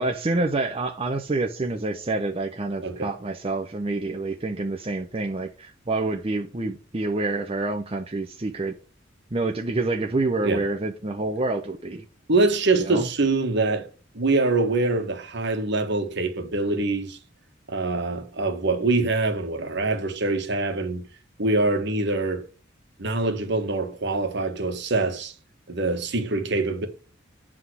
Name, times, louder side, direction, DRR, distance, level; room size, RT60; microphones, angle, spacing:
voice 1, 0.0-8.8 9.3-12.1 12.7-13.1 26.3-26.4, right 2 dB, 30° right, 0.7 m, -27 dB
voice 2, 12.3-13.9 14.1-17.2 17.7-21.1 21.4-22.4 23.0-25.3 25.7-26.9, right 3 dB, 60° right, 1.4 m, -24 dB
8.1 x 3.7 x 6.2 m
head